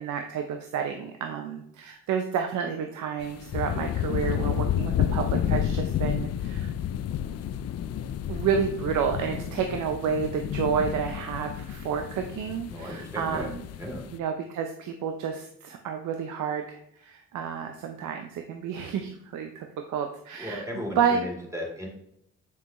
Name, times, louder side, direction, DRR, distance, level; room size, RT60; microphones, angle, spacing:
voice 1, 0.0-6.7 8.3-13.6 14.1-20.6 21.0-21.2, right 7 dB, 75° right, 5 dB, 0.7 m, -30 dB
sound 1, 3.2-14.2, left 10 dB, 55° left, 0.5 m, -30 dB
voice 2, 12.7-13.5 13.8-14.0 20.4-21.9, equal, 10° right, -1 dB, 2.7 m, -35 dB
7.4 x 5.9 x 3.0 m, 0.73 s
cardioid pair, 90°, 30 cm